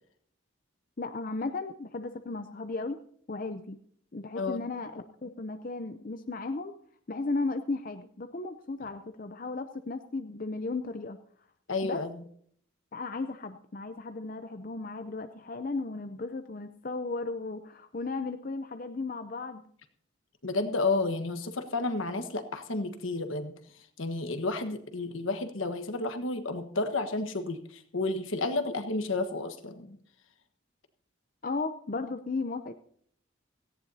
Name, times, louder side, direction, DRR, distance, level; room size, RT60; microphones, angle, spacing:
voice 1, 1.0-3.0 3.3-3.8 4.1-6.7 7.1-11.2 11.8-12.0 12.9-19.6 31.4-32.7, left 3 dB, 40° left, 8 dB, 0.6 m, -35 dB
voice 2, 11.7-12.2 20.4-30.0, left 3 dB, 80° left, 8 dB, 1.4 m, -31 dB
17.5 x 14.5 x 2.8 m, 0.62 s
head